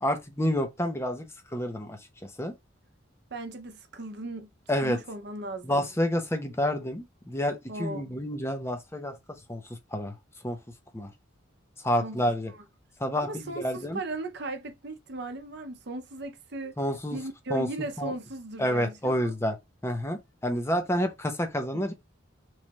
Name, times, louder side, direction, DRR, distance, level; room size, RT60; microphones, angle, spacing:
voice 1, 0.0-1.3 1.5-2.5 4.7-5.0 5.6-9.6 9.9-10.1 10.4-10.6 10.9-11.1 11.8-12.5 13.0-14.0 16.8-17.2 17.5-17.7 18.0-18.1 18.6-19.6 19.8-21.9, equal, 15° left, 0.6 m, -29 dB
voice 2, 3.3-4.5 4.8-5.9 7.7-8.0 12.0-12.6 13.1-16.7 17.1-19.4 21.7-21.8, right 2 dB, 55° right, 0.7 m, -37 dB
3.2 x 2.4 x 4.0 m
head